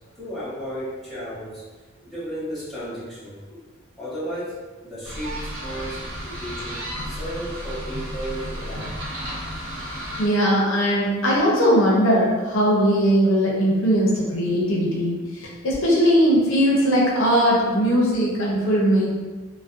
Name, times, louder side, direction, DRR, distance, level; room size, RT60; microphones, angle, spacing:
voice 1, 0.2-1.6 2.1-3.4 4.0-8.9, equal, ahead, -12 dB, 0.9 m, -34 dB
sound 1, 5.0-10.3, equal, 85° right, 0.6 m, -33 dB
voice 2, 10.2-19.1, equal, 75° left, -4 dB, 0.6 m, -19 dB
2.5 x 2.1 x 2.4 m, 1.3 s
head